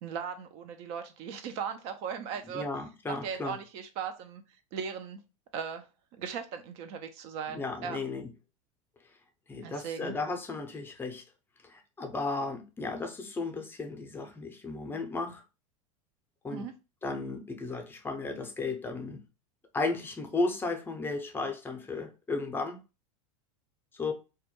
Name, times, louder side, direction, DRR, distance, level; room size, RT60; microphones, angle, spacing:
voice 1, 0.0-2.6 3.1-4.4 4.7-5.2 5.5-5.9 6.2-8.0 9.6-10.2 16.5-16.7, right 7 dB, 55° right, 0.4 m, -38 dB
voice 2, 2.5-3.6 7.5-8.3 9.5-11.2 11.6-15.4 16.4-16.7 17.0-19.2 19.7-22.8 23.9-24.1, left 3 dB, 10° left, 0.5 m, -34 dB
2.2 x 2.1 x 2.8 m
supercardioid pair, 115°, 17 cm